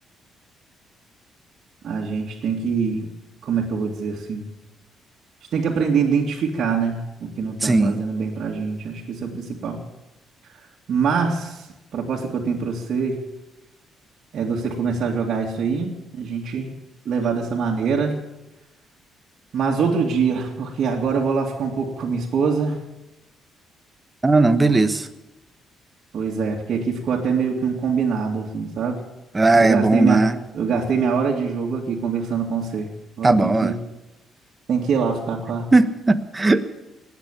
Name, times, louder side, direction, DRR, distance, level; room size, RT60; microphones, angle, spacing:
voice 1, 1.8-3.1 3.4-4.5 5.5-9.8 10.9-11.7 11.9-13.2 14.3-16.7 17.1-18.2 19.5-22.8 26.1-29.0 29.6-30.2 30.5-32.9 33.2-33.8 34.7-35.7, right 5 dB, 60° right, -4 dB, 2.4 m, -24 dB
voice 2, 7.6-8.0 24.2-25.1 29.3-30.4 33.2-33.7 35.7-36.6, right 2 dB, 20° right, 10 dB, 1.2 m, -17 dB
19.5 x 8.4 x 8.5 m, 0.99 s
cardioid pair, 80°, 0 cm